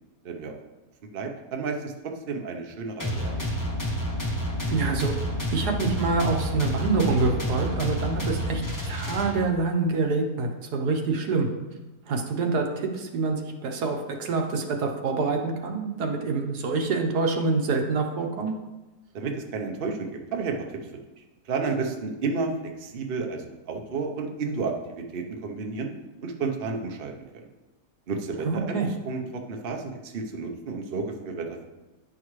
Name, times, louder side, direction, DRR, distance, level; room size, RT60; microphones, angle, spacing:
voice 1, 1.1-1.9 2.3-3.5 19.1-20.8 21.5-25.9 26.2-27.5 28.1-28.8 29.1-31.7, right 4 dB, 45° right, 3 dB, 0.8 m, -31 dB
sound 1, 3.0-9.7, equal, 15° left, 1.0 m, -29 dB
voice 2, 4.7-5.2 5.5-11.5 12.1-18.5 28.4-28.9, right 4 dB, 85° right, 3 dB, 1.5 m, -26 dB
9.8 x 5.9 x 3.1 m, 1.1 s
omnidirectional pair, 1.7 m